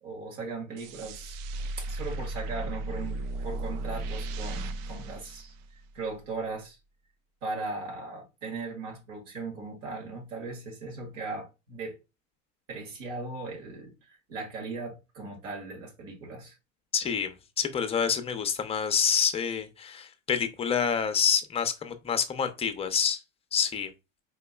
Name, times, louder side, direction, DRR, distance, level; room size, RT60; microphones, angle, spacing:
voice 1, 0.0-1.4 1.8-5.5 5.9-6.8 7.4-12.0 12.7-16.6, right 3 dB, 80° right, 1.7 m, -38 dB
sound 1, 0.8-6.1, right 2 dB, 55° right, 0.5 m, -35 dB
voice 2, 16.9-23.2 23.5-23.9, left 7 dB, 15° left, 0.5 m, -27 dB
4.3 x 2.9 x 2.2 m
supercardioid pair, 110°, 37 cm